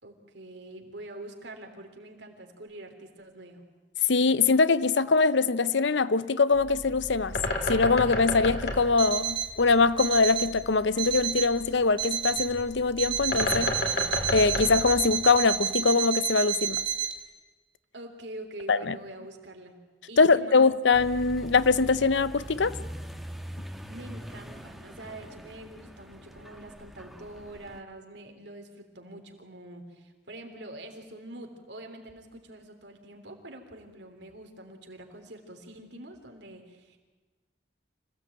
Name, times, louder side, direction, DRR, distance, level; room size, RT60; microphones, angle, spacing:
voice 1, 0.0-3.6 17.9-19.7 20.1-20.6 23.9-37.0, right 1 dB, 75° right, 3.3 m, -45 dB
voice 2, 4.1-7.4 7.7-13.7 14.3-16.8 18.7-19.0 20.2-22.8, left 4 dB, 80° left, 0.7 m, -23 dB
Bird, 6.5-15.7, left 2 dB, 60° left, 2.8 m, -33 dB
Alarm, 9.0-9.6 10.0-10.6 11.0-11.6 12.0-12.6 13.0-17.1, right 9 dB, 25° right, 2.6 m, -30 dB
Accelerating revving vroom, 20.9-27.8, equal, ahead, 1.3 m, -42 dB
25.5 x 16.5 x 8.9 m
head